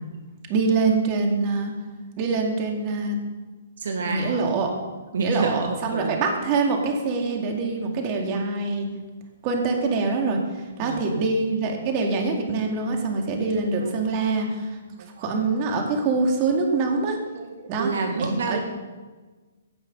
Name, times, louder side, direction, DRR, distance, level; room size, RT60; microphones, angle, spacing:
voice 1, 0.5-1.7 2.2-3.2 4.0-4.7 5.2-8.9 9.4-14.7 15.2-17.2 17.7-17.9 18.2-18.6, right 3 dB, 35° right, 2 dB, 2.2 m, -24 dB
voice 2, 3.8-4.5 5.1-6.2 10.8-11.2 13.1-13.3 13.6-13.9 14.9-15.2 16.9-17.0 17.3-18.6, right 4 dB, 70° right, 4 dB, 1.6 m, -29 dB
16.0 x 6.2 x 5.4 m, 1.3 s
hypercardioid pair, 145°, 0 cm